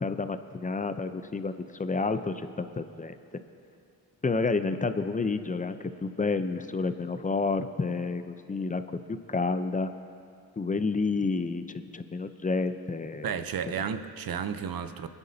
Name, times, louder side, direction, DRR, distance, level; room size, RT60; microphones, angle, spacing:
voice 1, 0.0-3.2 4.2-8.8 9.3-9.9 10.6-13.4 13.7-13.8, left 4 dB, 20° left, 10 dB, 0.6 m, -30 dB
voice 2, 13.2-15.1, right 7 dB, 60° right, 11 dB, 0.8 m, -32 dB
21.5 x 9.7 x 2.8 m, 2.6 s
cardioid pair, 70°, 39 cm